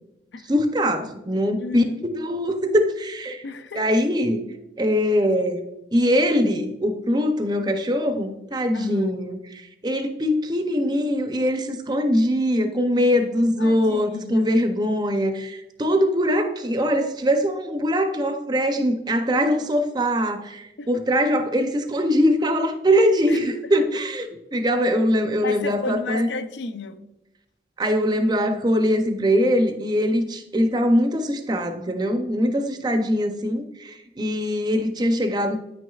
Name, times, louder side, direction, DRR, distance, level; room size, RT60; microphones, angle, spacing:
voice 1, 0.5-3.4 3.7-4.5 4.8-5.6 5.9-26.3 27.8-35.6, equal, 25° right, 0.5 m, -22 dB
voice 2, 1.6-2.0 3.4-4.0 8.7-9.2 13.6-14.6 20.8-21.1 23.3-23.4 25.4-27.0 32.5-32.6, left 3 dB, 85° left, 0.5 m, -32 dB
9.0 x 6.2 x 2.3 m
head